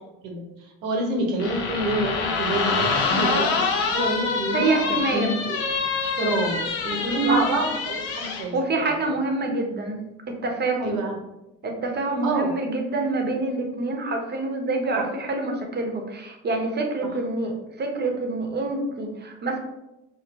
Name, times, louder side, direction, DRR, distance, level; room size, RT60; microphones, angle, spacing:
voice 1, 0.2-5.6 6.2-9.1 10.8-11.1 12.2-12.5 14.9-15.0, right 2 dB, 80° right, 1 dB, 0.8 m, -27 dB
sound 1, 1.4-8.5, left 4 dB, 75° left, 0.7 m, -26 dB
voice 2, 4.5-5.4 7.0-7.4 8.5-10.0 10.4-11.0 11.6-19.6, right 2 dB, 35° right, 3 dB, 0.8 m, -26 dB
2.5 x 2.1 x 4.0 m, 0.93 s
supercardioid pair, 65°, 30 cm